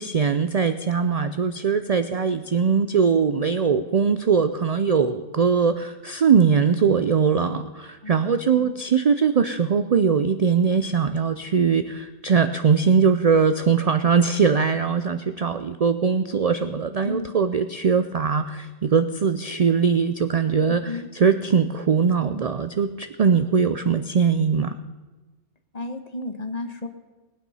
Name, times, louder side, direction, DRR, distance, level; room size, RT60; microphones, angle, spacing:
voice 1, 0.0-24.8, right 6 dB, 55° right, 10 dB, 0.4 m, -21 dB
voice 2, 8.0-8.7 17.0-17.3 20.7-21.1 25.7-26.9, left 2 dB, 35° left, 7 dB, 1.2 m, -33 dB
19.5 x 9.2 x 5.5 m, 1.3 s
omnidirectional pair, 1.2 m